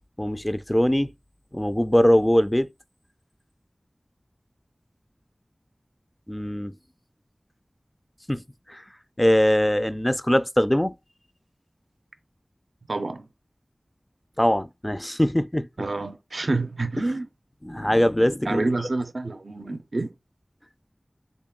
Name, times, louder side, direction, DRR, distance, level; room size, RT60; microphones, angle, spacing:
voice 1, 0.2-1.1 1.5-2.7 6.3-6.7 8.3-8.4 8.7-8.8 9.2-10.9 14.4-15.7 17.6-18.7, equal, 15° left, 0.3 m, -21 dB
voice 2, 12.9-13.3 15.8-17.3 18.5-20.1, right 2 dB, 85° right, 0.4 m, -28 dB
3.7 x 2.2 x 3.6 m
wide cardioid pair, 45°, 0 cm